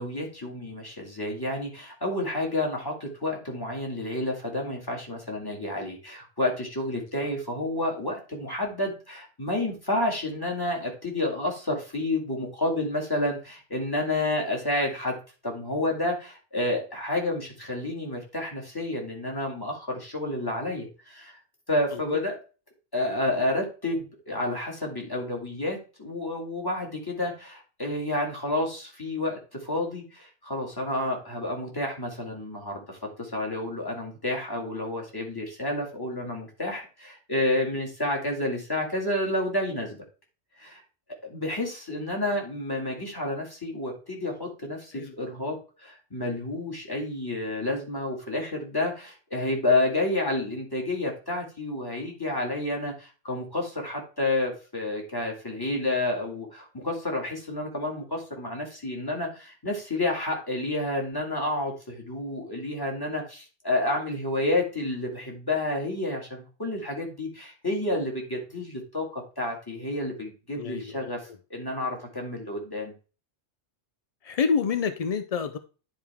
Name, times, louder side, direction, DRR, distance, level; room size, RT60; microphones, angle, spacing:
voice 1, 0.0-15.2 15.4-21.4 21.7-22.4 22.9-40.0 40.6-40.8 41.2-72.9, left 1 dB, 20° left, -1 dB, 2.2 m, -30 dB
voice 2, 70.6-71.0 74.2-75.6, left 5 dB, 60° left, 10 dB, 0.4 m, -27 dB
10.5 x 4.6 x 3.5 m, 0.34 s
omnidirectional pair, 1.3 m